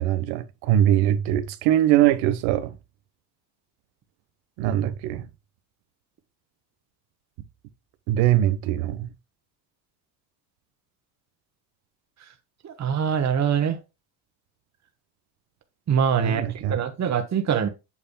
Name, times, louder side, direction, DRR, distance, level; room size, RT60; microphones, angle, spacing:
voice 1, 0.0-2.8 4.6-5.3 8.1-9.1 16.2-16.8, right 12 dB, 85° right, 1.1 m, -22 dB
voice 2, 12.6-13.8 15.9-17.7, right 7 dB, 40° right, 1.3 m, -24 dB
8.6 x 6.7 x 2.3 m
supercardioid pair, 85°, 44 cm